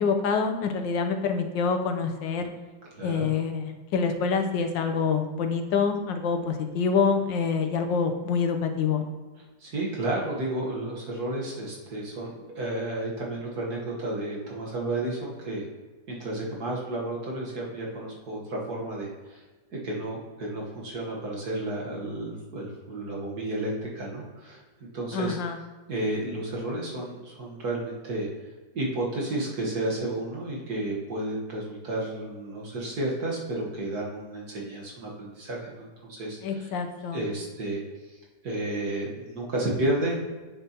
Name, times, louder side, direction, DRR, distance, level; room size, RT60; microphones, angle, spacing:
voice 1, 0.0-2.5 3.0-9.0 25.1-25.6 36.4-37.2, left 5 dB, 85° left, 5 dB, 1.5 m, -26 dB
voice 2, 2.9-3.3 9.6-15.6 16.1-19.4 19.7-24.6 24.9-25.4 25.9-28.3 28.7-36.7 37.1-37.8 38.4-40.2, right 1 dB, 60° right, -3 dB, 1.8 m, -32 dB
8.8 x 6.7 x 2.9 m, 1.3 s
omnidirectional pair, 1.9 m